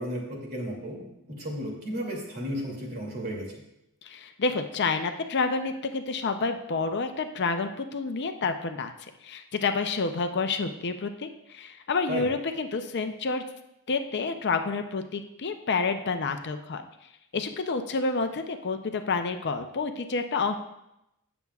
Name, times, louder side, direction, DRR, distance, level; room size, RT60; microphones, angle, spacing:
voice 1, 0.0-3.5 12.1-12.3, equal, 45° right, -2 dB, 2.6 m, -34 dB
voice 2, 4.0-8.9 9.2-13.4 13.9-16.9 17.3-20.6, left 4 dB, 50° left, 7 dB, 0.6 m, -29 dB
17.5 x 7.1 x 2.4 m, 0.86 s
head